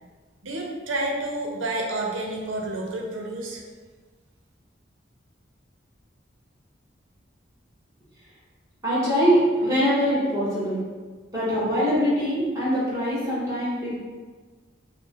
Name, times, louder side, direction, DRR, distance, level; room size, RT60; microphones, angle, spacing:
voice 1, 0.4-3.6, right 2 dB, 90° right, 0 dB, 0.6 m, -29 dB
voice 2, 8.8-10.8 11.3-14.0, equal, 15° right, -8 dB, 1.3 m, -23 dB
4.5 x 2.1 x 2.9 m, 1.4 s
head